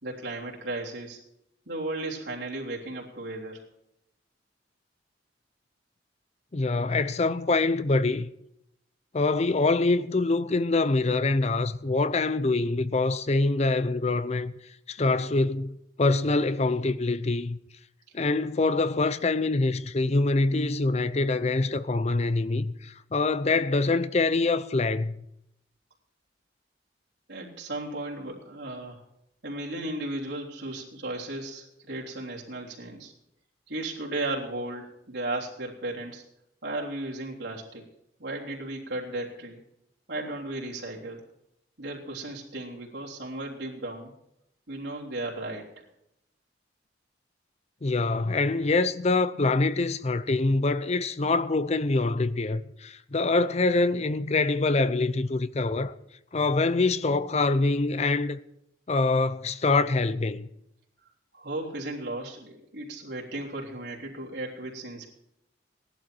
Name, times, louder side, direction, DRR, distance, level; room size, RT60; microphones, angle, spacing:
voice 1, 0.0-1.2 1.6-3.6 27.3-29.0 29.4-33.1 33.7-36.2 36.6-37.8 38.2-39.6 40.1-41.2 41.8-44.1 44.7-45.8 61.3-65.1, right 2 dB, 75° right, 3.4 m, -35 dB
voice 2, 6.5-8.3 9.1-14.5 14.9-17.6 18.1-25.2 47.8-55.9 56.3-58.4 58.9-60.5, left 3 dB, 35° left, 0.6 m, -25 dB
17.5 x 11.5 x 4.6 m
head